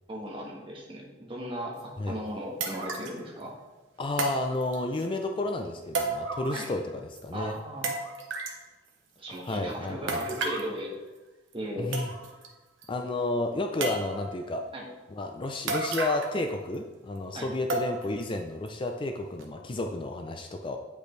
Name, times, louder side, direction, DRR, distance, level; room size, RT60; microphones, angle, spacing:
voice 1, 0.1-3.5 6.5-6.6 7.3-7.9 9.2-10.9 11.5-11.9 14.7-14.9 17.3-17.5, equal, 30° right, -2 dB, 1.3 m, -37 dB
sound 1, 1.8-1.9 2.6-3.2 4.2-5.0 5.9-6.9 7.1-7.2 7.8-8.6 10.1-10.7 11.5-11.6 11.9-12.5 12.8-12.9 13.8-14.4 15.7-16.4 16.7-16.8 17.7-18.2 18.7-18.8 19.4-19.5, right 3 dB, 80° right, 0.9 m, -32 dB
voice 2, 4.0-7.6 9.4-10.2 11.8-12.1 12.9-14.6 15.1-20.8, left 2 dB, 25° left, 4 dB, 0.4 m, -31 dB
8.6 x 5.2 x 3.2 m, 1.2 s
head